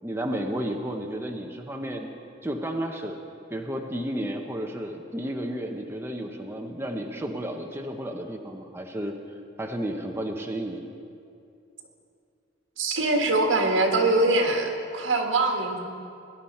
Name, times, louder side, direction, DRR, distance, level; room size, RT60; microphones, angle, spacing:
voice 1, 0.0-2.1 2.4-3.2 3.5-9.2 9.6-10.8, right 1 dB, 10° right, 2 dB, 0.8 m, -32 dB
voice 2, 12.8-15.8, right 2 dB, 80° right, 2 dB, 1.7 m, -23 dB
20.5 x 11.5 x 4.3 m, 2.5 s
head